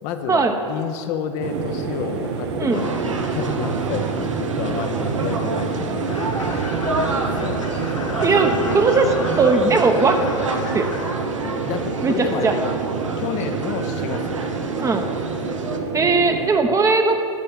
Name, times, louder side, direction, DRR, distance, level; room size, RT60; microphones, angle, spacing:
voice 1, 0.0-6.7 7.4-7.7 8.2-8.9 11.4-12.8 13.2-14.9 16.6-16.8, left 8 dB, 50° left, 7 dB, 0.7 m, -30 dB
sound 1, 1.4-16.5, right 5 dB, 65° right, 1.0 m, -27 dB
sound 2, 2.7-15.8, right 3 dB, 85° right, 0.8 m, -31 dB
sound 3, 6.1-11.1, left 3 dB, 85° left, 1.3 m, -32 dB
voice 2, 8.2-9.0 9.4-10.2 10.7-10.9 12.0-12.5 14.8-15.0 15.9-17.2, right 4 dB, 20° right, 6 dB, 0.8 m, -18 dB
10.5 x 5.5 x 6.2 m, 2.6 s
hypercardioid pair, 90°, 16 cm